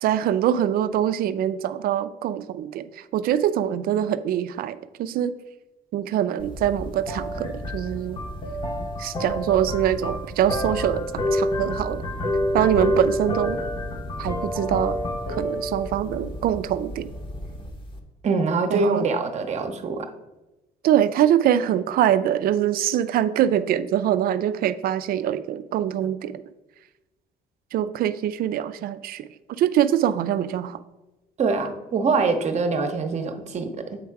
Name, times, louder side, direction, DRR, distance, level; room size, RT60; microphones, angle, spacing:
voice 1, 0.0-5.3 5.9-8.2 9.0-11.1 11.3-12.0 12.5-13.6 14.2-15.0 15.3-17.1 18.7-19.1 20.8-26.4 27.7-29.2 29.6-30.8, right 10 dB, 60° right, 13 dB, 0.4 m, -23 dB
sound 1, 6.4-18.0, left 1 dB, 30° left, 0.9 m, -29 dB
voice 2, 18.2-20.1 31.4-34.0, right 4 dB, 40° right, 7 dB, 0.8 m, -24 dB
7.9 x 3.5 x 4.6 m, 1.0 s
cardioid pair, 110°, 17 cm